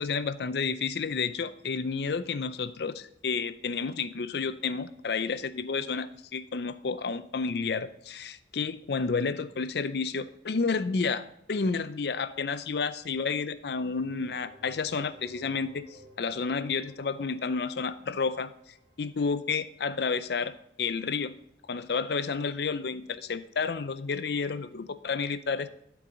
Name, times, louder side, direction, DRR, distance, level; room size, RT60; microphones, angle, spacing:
voice 1, 0.0-18.5 19.0-20.5 20.8-21.3 21.7-25.7, left 5 dB, 60° left, 12 dB, 0.5 m, -31 dB
sound 1, 14.0-19.7, equal, 60° right, 1.7 m, -55 dB
12.0 x 4.7 x 3.9 m, 0.76 s
head